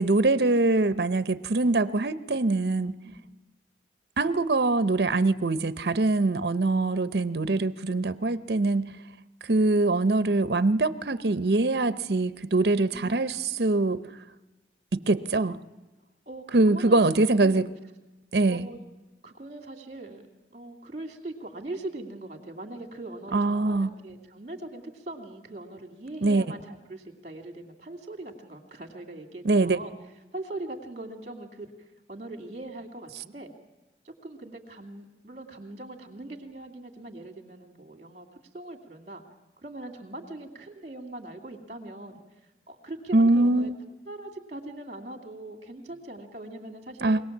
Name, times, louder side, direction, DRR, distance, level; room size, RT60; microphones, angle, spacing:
voice 1, 0.0-3.0 4.2-8.9 9.4-14.1 14.9-15.6 16.5-17.7 18.3-18.7 23.3-23.9 26.2-26.4 29.4-29.8 43.1-43.7 47.0-47.2, right 2 dB, 65° right, 13 dB, 0.7 m, -23 dB
voice 2, 12.9-13.7 16.3-17.0 17.4-17.7 18.5-18.8 19.2-20.2 20.5-29.9 30.3-31.7 32.1-33.5 34.0-38.3 38.5-39.2 39.6-42.2 42.7-43.7 44.1-47.1, right 2 dB, 40° right, 4 dB, 2.5 m, -41 dB
24.0 x 18.0 x 7.3 m, 1.1 s
head